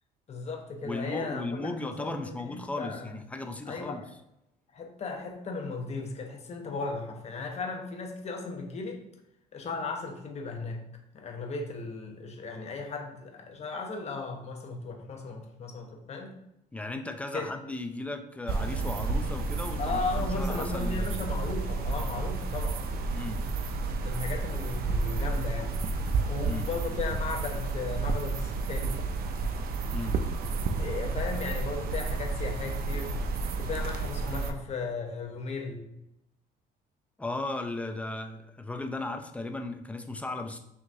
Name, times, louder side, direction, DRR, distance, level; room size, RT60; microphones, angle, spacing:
voice 1, 0.3-3.2 3.7-4.1 4.7-9.0 9.5-10.8 11.1-16.4 17.3-17.5 19.8-22.8 24.0-25.7 26.3-29.0 30.8-33.1 33.6-35.8, left 4 dB, 40° left, 3 dB, 1.0 m, -36 dB
voice 2, 0.8-4.0 16.7-21.2 23.1-23.4 26.4-26.7 29.9-30.2 37.2-40.6, left 2 dB, 10° left, 5 dB, 0.5 m, -36 dB
sound 1, 18.5-34.5, right 3 dB, 65° right, 0.5 m, -31 dB
6.0 x 2.9 x 2.7 m, 0.84 s
cardioid pair, 110°, 17 cm